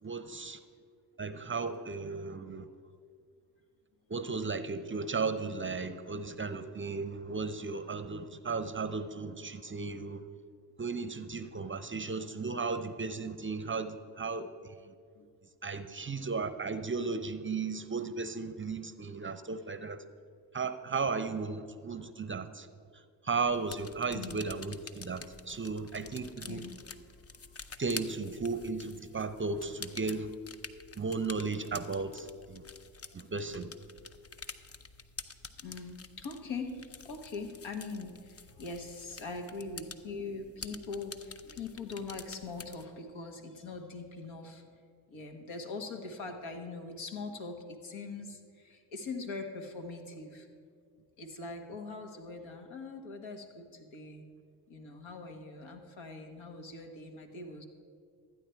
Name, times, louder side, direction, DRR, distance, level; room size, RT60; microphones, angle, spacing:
voice 1, 0.0-0.6 1.2-2.7 4.1-10.2 10.8-14.5 15.6-20.0 20.5-22.7 23.2-26.6 27.8-30.3 31.0-32.6 33.1-33.7, right 4 dB, 25° right, 12 dB, 0.6 m, -35 dB
sound 1, 23.5-42.9, left 5 dB, 30° left, 0.7 m, -48 dB
voice 2, 24.1-24.5 26.0-26.2 26.5-26.8 27.6-27.8 35.6-44.6 45.1-50.5 51.2-54.2 54.7-57.6, left 3 dB, 65° left, 4 dB, 1.5 m, -42 dB
13.0 x 9.2 x 4.6 m, 2.3 s
hypercardioid pair, 45°, 49 cm